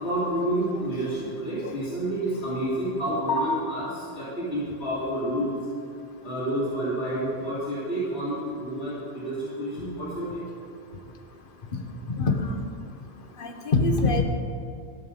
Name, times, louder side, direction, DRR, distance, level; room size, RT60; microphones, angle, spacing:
voice 1, 0.0-5.5 6.2-10.4, right 1 dB, 70° left, -11 dB, 2.9 m, -29 dB
voice 2, 12.1-12.7 13.4-14.2, left 3 dB, 55° left, 5 dB, 1.2 m, -24 dB
13.5 x 6.7 x 5.5 m, 2.4 s
omnidirectional pair, 1.1 m